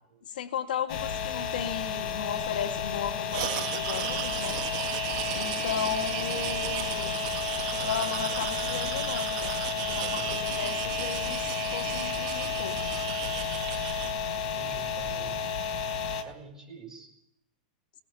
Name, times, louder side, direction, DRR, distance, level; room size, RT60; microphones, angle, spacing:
voice 1, 0.3-4.6 5.3-7.3 7.8-11.4 11.7-12.8, left 8 dB, 90° left, 5 dB, 2.2 m, -35 dB
sound 1, 0.9-16.2, left 6 dB, 45° left, 4.0 m, -32 dB
sound 2, 3.3-14.1, right 13 dB, 50° right, 1.4 m, -35 dB
voice 2, 6.3-6.7 14.5-15.5 16.0-17.1, right 3 dB, 10° right, 0 dB, 7.5 m, -47 dB
21.0 x 19.5 x 8.7 m, 0.84 s
supercardioid pair, 160°, 5 cm